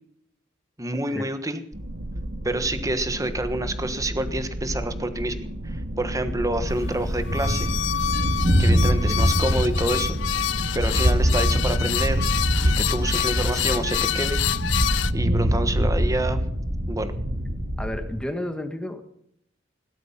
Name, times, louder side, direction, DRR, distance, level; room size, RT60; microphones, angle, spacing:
voice 1, 0.8-1.6 2.4-7.7 8.6-12.3 12.6-14.4 15.1-16.4 16.9-17.1, right 1 dB, 20° right, 10 dB, 1.3 m, -28 dB
sound 1, 1.7-15.6, right 1 dB, 65° right, 2.2 m, -34 dB
Thunder, 5.6-18.2, equal, 50° right, 2.2 m, -24 dB
sound 2, 6.7-15.1, left 10 dB, 75° left, 0.6 m, -27 dB
voice 2, 17.8-19.0, left 1 dB, 5° left, 6 dB, 1.7 m, -31 dB
17.0 x 12.5 x 5.8 m, 0.71 s
head